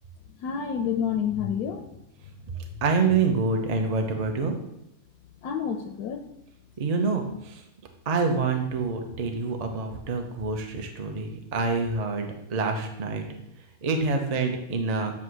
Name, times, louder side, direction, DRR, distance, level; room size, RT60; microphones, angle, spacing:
voice 1, 0.4-1.8 5.4-6.2, left 7 dB, 85° left, 6 dB, 1.1 m, -28 dB
voice 2, 2.8-4.6 6.8-7.6 8.1-13.2 13.8-15.1, right 4 dB, 40° right, 4 dB, 0.6 m, -26 dB
8.3 x 2.8 x 6.2 m, 0.86 s
omnidirectional pair, 1.6 m